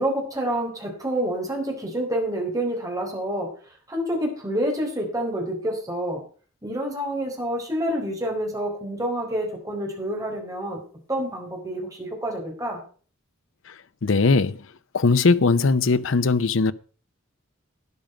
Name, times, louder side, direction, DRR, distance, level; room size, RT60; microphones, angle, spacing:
voice 1, 0.0-3.5 3.9-6.2 6.6-10.8 11.1-12.8, right 1 dB, 15° right, 4.2 m, -28 dB
voice 2, 14.0-14.6 14.9-16.7, left 4 dB, 75° left, 0.7 m, -19 dB
12.5 x 10.5 x 5.1 m
head